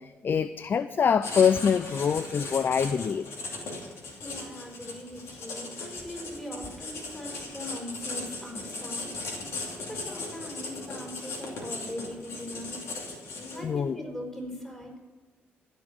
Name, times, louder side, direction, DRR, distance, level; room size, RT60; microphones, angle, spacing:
voice 1, 0.2-3.3 13.6-14.0, left 7 dB, 50° left, 14 dB, 0.4 m, -24 dB
Writing, 1.2-13.8, left 3 dB, 70° left, 2.6 m, -38 dB
voice 2, 4.2-9.1 9.9-12.8 13.5-15.1, equal, 10° left, 0 dB, 4.5 m, -40 dB
15.5 x 5.3 x 8.8 m, 1.3 s
supercardioid pair, 65°, 5 cm